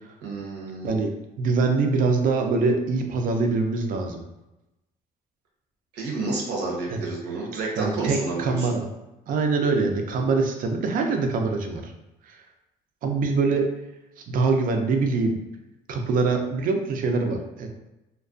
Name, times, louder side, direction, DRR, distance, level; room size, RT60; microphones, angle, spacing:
voice 1, 0.2-0.9 5.9-8.7, right 3 dB, 85° right, -2 dB, 0.7 m, -30 dB
voice 2, 1.4-4.2 6.9-7.0 7.5-8.9 9.3-11.9 12.3-12.4 13.0-13.7 14.3-15.4 15.9-17.7, right 4 dB, 55° right, 4 dB, 0.4 m, -24 dB
2.3 x 2.2 x 2.4 m, 0.96 s
cardioid pair, 110°, 17 cm